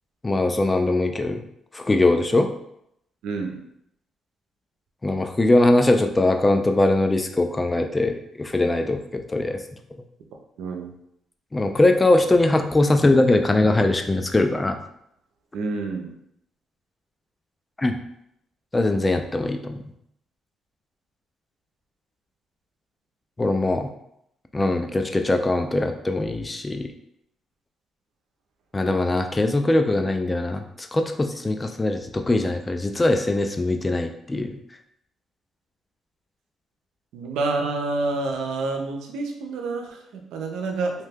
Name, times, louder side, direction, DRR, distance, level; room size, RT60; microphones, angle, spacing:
voice 1, 0.2-1.4 1.7-2.5 5.0-9.6 11.5-14.8 17.8-17.9 18.7-19.8 23.4-23.9 24.5-26.9 28.7-34.6, left 2 dB, 20° left, 6 dB, 0.3 m, -21 dB
voice 2, 3.2-3.6 10.6-10.9 15.5-16.1 37.1-40.9, right 3 dB, 90° right, 3 dB, 0.5 m, -28 dB
2.8 x 2.1 x 3.4 m, 0.76 s
cardioid pair, 90°, 0 cm